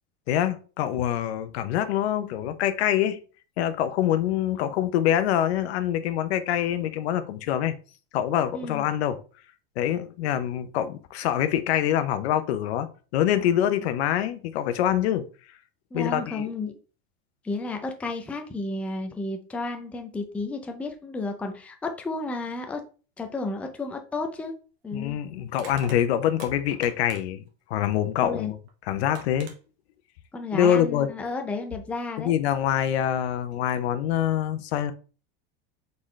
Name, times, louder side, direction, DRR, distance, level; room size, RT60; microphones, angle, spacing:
voice 1, 0.3-3.2 3.6-7.7 8.1-9.2 9.8-12.9 13.1-15.3 15.9-16.4 24.9-27.4 27.7-28.6 28.9-29.5 30.5-31.1 32.2-34.9, left 10 dB, 85° left, 0.7 m, -25 dB
voice 2, 15.9-16.8 17.4-22.8 23.2-24.5 24.8-25.2 28.2-28.5 30.3-32.3, left 3 dB, 5° left, 0.4 m, -32 dB
Crushing, 24.1-24.3 25.5-27.5 28.7-28.8 29.1-29.6, right 6 dB, 65° right, 1.2 m, -44 dB
3.9 x 3.8 x 3.1 m
supercardioid pair, 140°, 31 cm